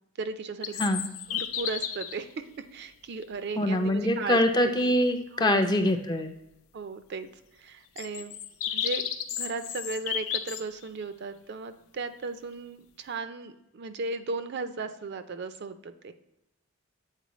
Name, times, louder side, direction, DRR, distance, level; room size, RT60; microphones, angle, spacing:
voice 1, 0.2-0.8 1.3-4.9 5.3-5.7 6.7-7.3 7.5-8.3 8.7-16.1, right 4 dB, 50° right, 10 dB, 0.4 m, -36 dB
sound 1, 0.6-2.2 3.2-3.3 8.0-10.6, left 9 dB, 75° left, 0.5 m, -33 dB
voice 2, 3.6-6.3, left 1 dB, 20° left, 5 dB, 0.4 m, -24 dB
8.1 x 4.2 x 3.0 m, 0.88 s
head